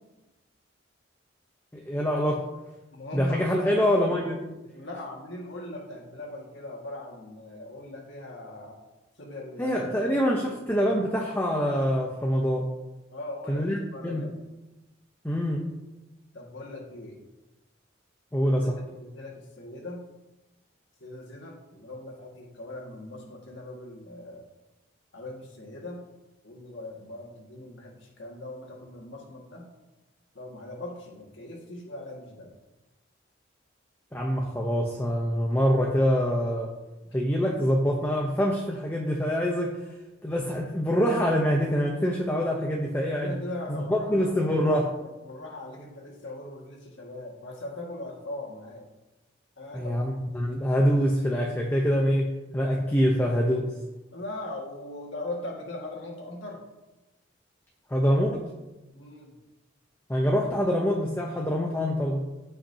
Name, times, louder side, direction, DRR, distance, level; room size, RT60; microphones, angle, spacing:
voice 1, 1.7-2.4 3.1-4.4 9.6-12.7 13.5-14.3 15.2-15.7 18.3-18.8 34.1-36.7 37.1-39.8 40.2-43.4 43.7-44.9 49.7-53.7 57.9-58.4 60.1-62.3, equal, 10° left, 0 dB, 0.8 m, -25 dB
voice 2, 2.9-3.4 4.7-8.8 9.2-9.8 10.3-10.9 13.1-14.4 16.3-17.2 18.4-20.0 21.0-24.5 25.1-26.0 26.4-29.6 30.3-32.6 43.2-44.6 45.0-48.9 49.6-50.0 50.3-50.5 54.1-56.6 58.9-59.3, left 2 dB, 65° left, -1 dB, 2.0 m, -40 dB
16.5 x 5.8 x 2.8 m, 1.0 s
head